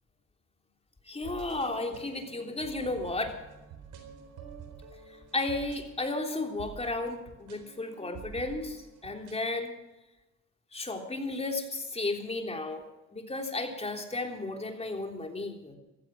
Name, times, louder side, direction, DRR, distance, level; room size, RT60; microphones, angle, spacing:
voice 1, 1.1-3.3 5.3-9.7 10.7-12.8 13.1-15.8, left 2 dB, 20° left, 2 dB, 3.4 m, -33 dB
sound 1, 1.2-9.5, right 6 dB, 85° right, 4.1 m, -48 dB
15.5 x 14.5 x 6.1 m, 1.0 s
cardioid pair, 90°, 30 cm